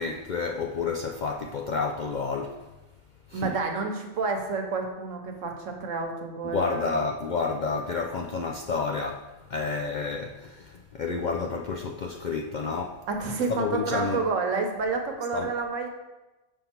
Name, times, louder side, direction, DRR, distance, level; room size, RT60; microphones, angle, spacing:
voice 1, 0.0-2.6 3.3-3.5 6.5-13.0 13.5-14.2 15.3-15.5, left 4 dB, 70° left, 3 dB, 0.4 m, -30 dB
voice 2, 3.3-6.9 13.1-15.9, right 4 dB, 85° right, 3 dB, 1.3 m, -29 dB
5.6 x 5.3 x 4.3 m, 1.1 s
omnidirectional pair, 1.3 m